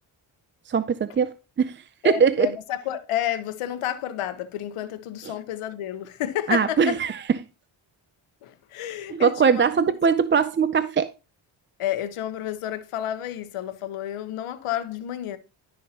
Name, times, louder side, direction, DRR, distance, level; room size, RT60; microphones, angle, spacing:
voice 1, 0.7-2.5 6.5-7.2 9.1-11.1, right 6 dB, 25° right, 0.3 m, -21 dB
voice 2, 2.0-7.0 8.4-9.9 11.8-15.4, left 11 dB, 85° left, 0.9 m, -30 dB
11.5 x 5.5 x 2.8 m
cardioid pair, 65°, 49 cm